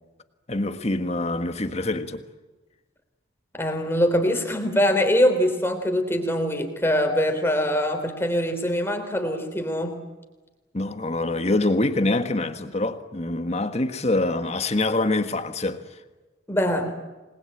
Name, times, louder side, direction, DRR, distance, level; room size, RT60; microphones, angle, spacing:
voice 1, 0.5-2.2 10.7-15.8, left 2 dB, 35° left, 1.6 m, -25 dB
voice 2, 3.5-10.0 16.5-16.9, equal, 10° left, 3.3 m, -23 dB
27.5 x 20.5 x 8.9 m
head